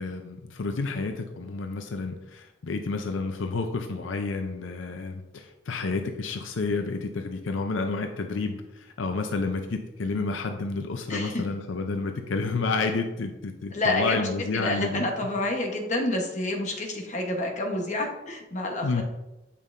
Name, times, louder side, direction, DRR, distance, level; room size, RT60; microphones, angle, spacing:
voice 1, 0.0-15.1 18.8-19.0, left 3 dB, 80° left, 5 dB, 0.5 m, -30 dB
voice 2, 11.1-11.4 13.7-14.3 14.5-19.0, left 2 dB, 40° left, 1 dB, 1.0 m, -28 dB
8.4 x 5.5 x 2.6 m, 0.99 s
head